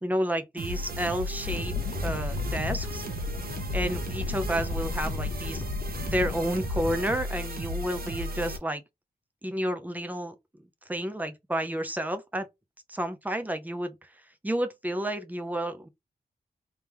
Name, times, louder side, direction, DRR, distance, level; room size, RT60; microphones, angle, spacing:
voice 1, 0.0-1.7 2.0-3.0 3.7-5.6 5.9-8.8 9.4-10.3 10.9-12.5 12.9-14.1 14.4-15.9, right 1 dB, 10° right, 0.6 m, -31 dB
sound 1, 0.6-8.6, equal, 70° right, 1.0 m, -35 dB
sound 2, 1.4-7.0, left 4 dB, 60° left, 0.5 m, -34 dB
3.4 x 3.3 x 2.9 m
wide cardioid pair, 175°, 16 cm